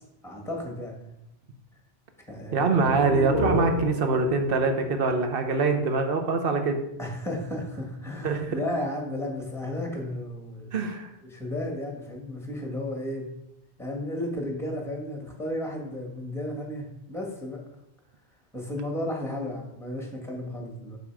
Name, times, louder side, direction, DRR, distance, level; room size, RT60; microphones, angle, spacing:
voice 1, 0.2-1.0 2.3-2.9 7.0-10.7 11.2-13.3 13.8-17.6 18.5-21.0, left 1 dB, ahead, 0 dB, 1.8 m, -33 dB
voice 2, 2.5-6.8 8.2-8.6 10.7-11.1, right 4 dB, 60° right, 6 dB, 1.1 m, -24 dB
sound 1, 2.6-6.2, right 1 dB, 80° right, 2.0 m, -32 dB
7.6 x 5.6 x 4.7 m, 0.85 s
omnidirectional pair, 1.1 m